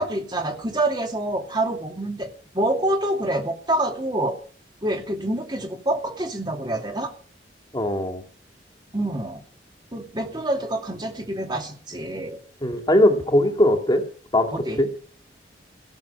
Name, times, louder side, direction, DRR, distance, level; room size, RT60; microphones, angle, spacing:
voice 1, 0.0-4.4 4.8-7.1 8.9-9.4 9.9-12.4 14.5-14.8, right 1 dB, 25° right, 3 dB, 2.6 m, -26 dB
voice 2, 7.7-8.2 12.6-14.0 14.3-14.9, left 1 dB, 25° left, 4 dB, 2.4 m, -20 dB
17.0 x 7.6 x 8.5 m, 0.43 s
head